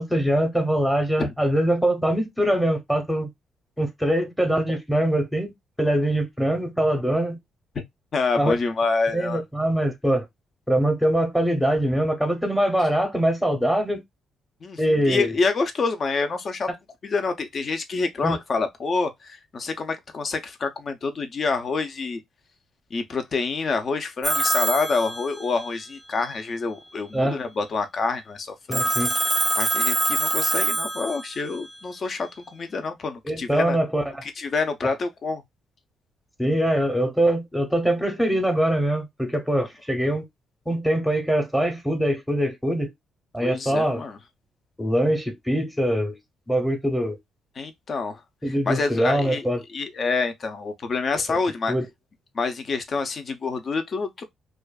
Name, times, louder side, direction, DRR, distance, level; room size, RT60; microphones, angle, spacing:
voice 1, 0.0-3.3 3.8-5.5 5.8-7.4 8.4-8.5 9.1-10.3 10.7-14.0 14.8-15.3 18.2-18.4 27.1-27.4 28.7-29.1 33.2-34.2 36.4-40.2 40.7-42.9 43.3-44.0 44.8-46.2 46.5-47.2 48.4-49.6 51.3-51.4 51.7-51.8, right 1 dB, 5° left, 0.8 m, -23 dB
voice 2, 8.1-9.4 14.6-16.7 17.0-22.2 22.9-28.8 29.6-33.8 34.2-35.4 39.6-39.7 43.4-44.2 47.6-48.2 48.5-49.5 49.7-51.7 52.3-54.2, left 4 dB, 45° left, 0.6 m, -27 dB
Telephone, 24.2-25.8 28.7-31.6, right 2 dB, 15° right, 0.4 m, -24 dB
2.5 x 2.3 x 2.2 m
cardioid pair, 90°, 0 cm